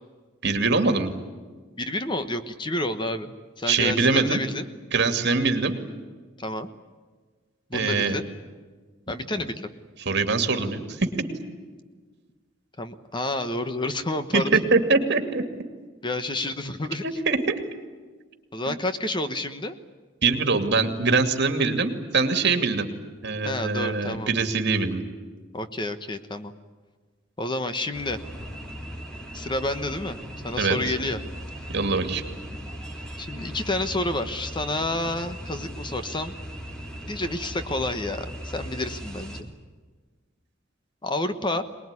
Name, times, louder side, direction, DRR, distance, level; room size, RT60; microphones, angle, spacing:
voice 1, 0.4-1.1 3.7-4.4 4.9-5.7 7.7-8.2 10.0-11.1 14.3-15.4 17.0-17.6 18.7-18.8 20.2-22.9 23.2-25.0 30.6-30.9 31.7-32.2, right 4 dB, 60° right, 7 dB, 2.5 m, -23 dB
voice 2, 1.8-4.6 6.4-6.7 7.7-8.2 9.1-9.7 12.8-14.6 16.0-17.0 18.5-19.7 23.4-24.3 25.5-26.5 27.4-28.2 29.3-30.2 30.4-31.2 33.2-36.3 37.1-39.5 41.0-41.6, left 2 dB, 25° left, 9 dB, 1.2 m, -29 dB
sound 1, 27.9-39.4, equal, 5° left, 3.2 m, -38 dB
23.5 x 20.5 x 9.8 m, 1.4 s
head